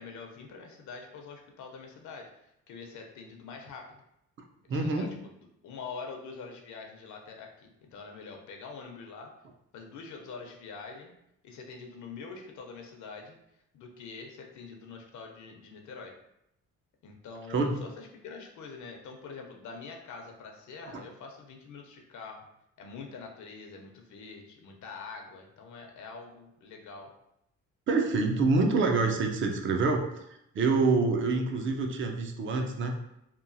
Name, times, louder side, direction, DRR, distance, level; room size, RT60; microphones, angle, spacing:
voice 1, 0.0-2.3 2.7-4.0 4.7-5.3 5.6-9.3 9.7-11.1 11.4-13.4 13.7-16.1 17.0-22.4 22.8-27.1, left 4 dB, 70° left, 2 dB, 0.6 m, -45 dB
voice 2, 4.7-5.1 17.5-17.8 20.9-21.0 27.9-30.0 30.5-33.0, right 3 dB, 40° right, 3 dB, 0.5 m, -26 dB
2.9 x 2.3 x 2.6 m, 0.80 s
cardioid pair, 90°, 30 cm